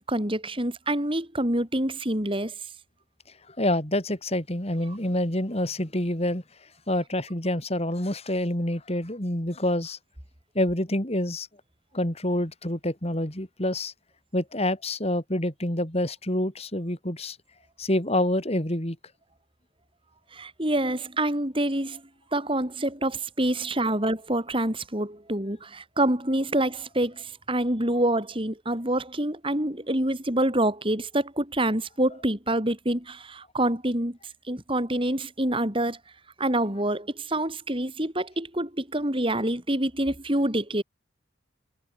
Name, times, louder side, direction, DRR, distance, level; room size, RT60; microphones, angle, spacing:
voice 1, 0.1-2.5 20.3-22.0 22.3-34.2 34.5-36.0 36.4-40.8, right 1 dB, 25° right, 4.7 m, -26 dB
voice 2, 3.5-6.4 6.9-10.0 10.5-11.5 11.9-13.9 14.3-17.4 17.8-19.0, left 1 dB, 30° left, 3.9 m, -27 dB
head